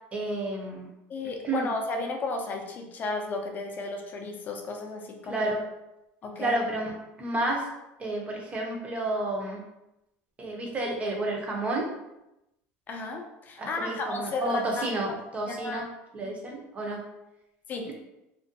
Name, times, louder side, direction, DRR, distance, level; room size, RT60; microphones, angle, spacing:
voice 1, 0.1-0.9 1.4-1.7 5.2-5.6 6.4-7.7 8.0-9.6 10.4-11.9 13.6-15.9 16.1-17.0, right 2 dB, 20° right, 0 dB, 0.6 m, -31 dB
voice 2, 1.1-5.5 6.2-6.6 12.9-14.8 15.5-15.9 17.7-18.0, left 3 dB, 30° left, 2 dB, 0.4 m, -33 dB
2.5 x 2.1 x 2.5 m, 0.90 s
supercardioid pair, 130°, 6 cm